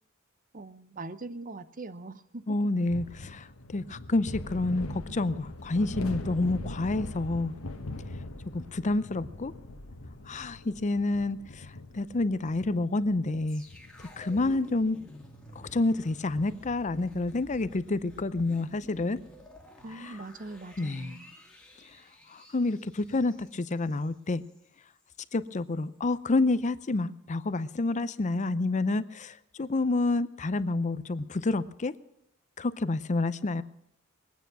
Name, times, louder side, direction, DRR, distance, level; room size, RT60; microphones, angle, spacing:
voice 1, 0.5-2.6 19.8-21.4, right 2 dB, 40° right, 13 dB, 0.8 m, -42 dB
voice 2, 2.5-3.5 3.7-7.5 8.5-9.5 10.3-11.4 11.9-13.6 14.2-15.0 15.7-19.2 20.0-20.1 20.8-21.2 22.3-24.4 25.3-31.9 32.6-33.6, left 2 dB, 35° left, 15 dB, 0.6 m, -28 dB
sound 1, 2.8-18.7, left 2 dB, 80° left, 1.3 m, -42 dB
sound 2, 13.5-24.7 25.0-25.1, equal, 5° left, 2.2 m, -52 dB
21.5 x 9.3 x 6.1 m, 0.78 s
head